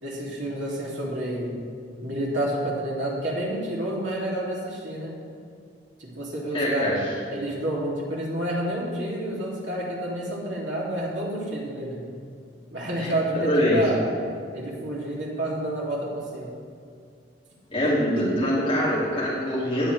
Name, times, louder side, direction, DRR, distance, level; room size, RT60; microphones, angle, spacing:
voice 1, 0.0-1.5 2.0-5.1 6.0-7.0 7.3-12.0 12.7-14.0 14.5-16.5 17.8-18.3, right 1 dB, 85° right, -5 dB, 2.9 m, -29 dB
voice 2, 6.5-7.0 13.0-13.8 17.7-19.9, equal, 30° left, -9 dB, 2.6 m, -24 dB
20.0 x 7.2 x 3.4 m, 2.3 s
head